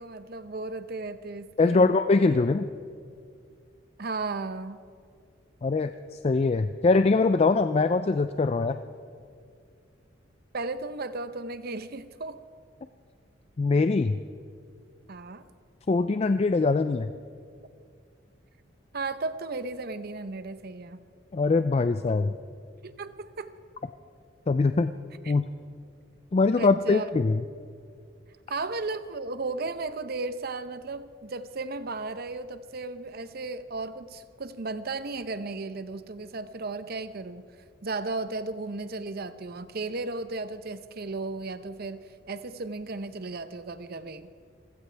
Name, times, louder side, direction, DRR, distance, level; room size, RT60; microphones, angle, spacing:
voice 1, 0.0-2.0 4.0-4.8 10.5-12.4 15.1-15.4 18.9-21.0 22.8-23.5 25.2-25.3 26.6-27.1 28.5-37.4 37.8-44.3, right 3 dB, 50° right, 12 dB, 0.7 m, -35 dB
voice 2, 1.6-2.7 5.6-5.9 6.2-8.8 13.6-14.2 15.9-17.1 21.3-22.4 24.5-24.9 25.3-25.4 26.3-27.4, left 3 dB, 30° left, 10 dB, 0.4 m, -22 dB
26.5 x 16.0 x 3.4 m, 2.2 s
head